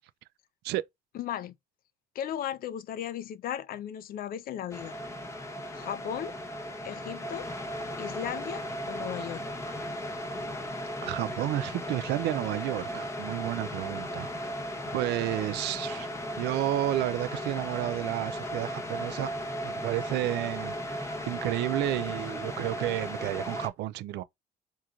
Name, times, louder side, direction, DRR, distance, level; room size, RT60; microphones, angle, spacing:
voice 1, 1.1-1.5 2.2-4.9 5.7-6.3 6.8-7.5 8.0-9.4, left 10 dB, 60° left, 0.5 m, -36 dB
sound 1, 4.7-23.7, equal, 15° left, 0.9 m, -36 dB
voice 2, 11.0-14.5 14.9-16.1 16.4-19.3 19.6-24.2, right 15 dB, 80° right, 0.4 m, -31 dB
3.6 x 3.0 x 2.4 m
cardioid pair, 110°, 17 cm